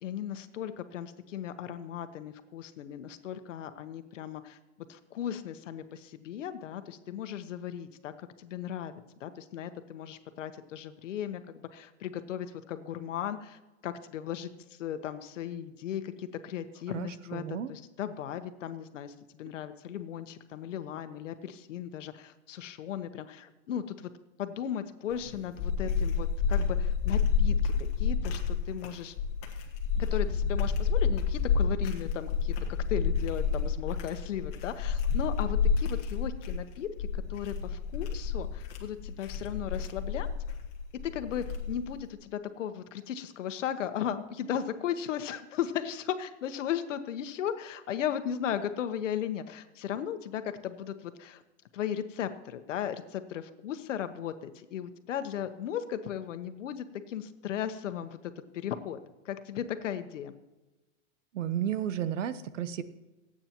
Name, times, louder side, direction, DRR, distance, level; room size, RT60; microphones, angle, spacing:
voice 1, 0.0-4.6 4.9-8.9 9.2-24.1 24.4-29.1 30.0-32.6 32.9-40.3 41.0-51.4 51.7-59.0 59.2-60.3, left 9 dB, 85° left, 9 dB, 1.2 m, -36 dB
voice 2, 16.9-17.7 61.3-62.8, right 10 dB, 85° right, 14 dB, 1.0 m, -33 dB
sound 1, 25.1-42.0, left 6 dB, 30° left, 1.5 m, -29 dB
26.5 x 8.9 x 3.0 m, 1.1 s
supercardioid pair, 175°, 36 cm